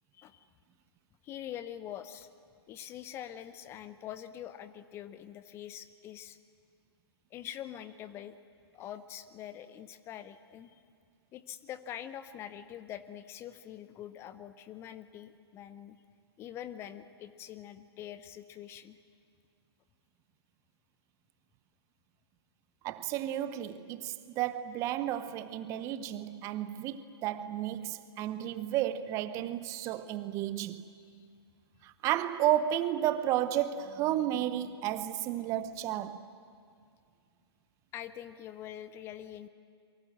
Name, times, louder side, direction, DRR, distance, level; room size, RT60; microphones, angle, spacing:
voice 1, 0.1-0.5 1.2-2.3 2.7-6.4 7.3-8.4 8.7-10.7 11.3-16.0 16.4-19.0 37.9-39.5, left 11 dB, 20° left, 0.8 m, -44 dB
voice 2, 22.8-30.8 31.8-36.3, right 12 dB, 20° right, 0.8 m, -32 dB
29.0 x 23.5 x 7.7 m
figure-of-eight pair, 125°, 14 cm